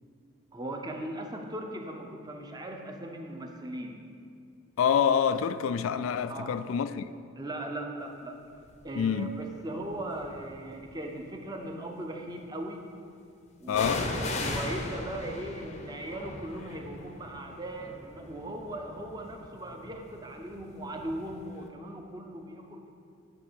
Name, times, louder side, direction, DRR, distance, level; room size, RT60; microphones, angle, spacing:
voice 1, 0.5-4.1 6.3-6.6 7.4-8.4 8.8-12.8 13.6-22.9, right 1 dB, 20° right, 0.7 m, -39 dB
voice 2, 4.8-7.1 9.0-9.4 13.7-14.1, left 7 dB, 70° left, 0.3 m, -27 dB
sound 1, 8.7-9.1 9.9-10.8 13.7-21.3 21.6-21.7, left 2 dB, 30° left, 0.6 m, -38 dB
10.0 x 4.4 x 6.8 m
head